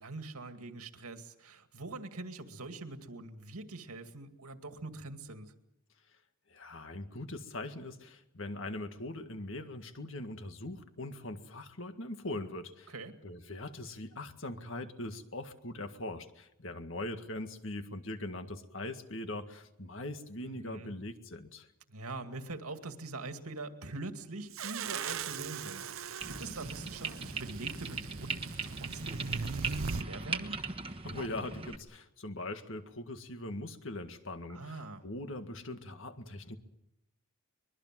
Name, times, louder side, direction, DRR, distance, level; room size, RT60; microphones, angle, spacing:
voice 1, 0.0-5.5 12.9-13.2 20.5-20.9 21.9-30.6 34.5-35.0, right 2 dB, 85° right, 7 dB, 2.3 m, -44 dB
voice 2, 6.5-12.9 13.2-21.7 31.0-36.6, left 1 dB, 60° left, 7 dB, 1.9 m, -41 dB
sound 1, 24.5-30.0, right 5 dB, 70° right, 0.8 m, -39 dB
sound 2, 26.2-31.8, right 4 dB, 25° right, 1.3 m, -39 dB
23.5 x 22.0 x 7.6 m, 0.84 s
head